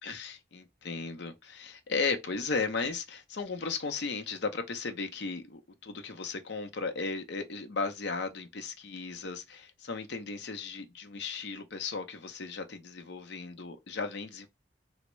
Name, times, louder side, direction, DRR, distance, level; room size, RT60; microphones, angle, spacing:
voice 1, 0.0-14.5, left 4 dB, 65° left, 0.6 m, -35 dB
3.4 x 2.0 x 3.0 m
head